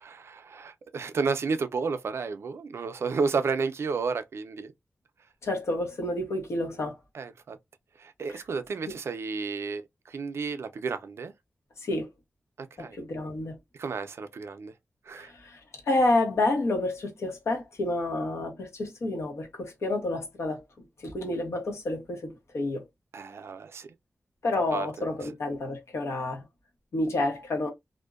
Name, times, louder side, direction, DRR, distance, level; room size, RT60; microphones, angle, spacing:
voice 1, 0.0-4.7 7.1-7.6 8.0-11.3 12.6-13.0 13.8-14.7 15.1-15.3 23.1-23.9 24.7-25.1, right 5 dB, 70° right, 0.4 m, -32 dB
voice 2, 5.4-6.9 8.3-8.4 8.9-9.0 11.8-12.1 13.0-13.5 15.1-15.6 15.9-20.6 21.0-22.8 24.4-26.4 26.9-27.7, left 2 dB, 85° left, 1.0 m, -29 dB
2.6 x 2.1 x 2.3 m
wide cardioid pair, 135°, 5 cm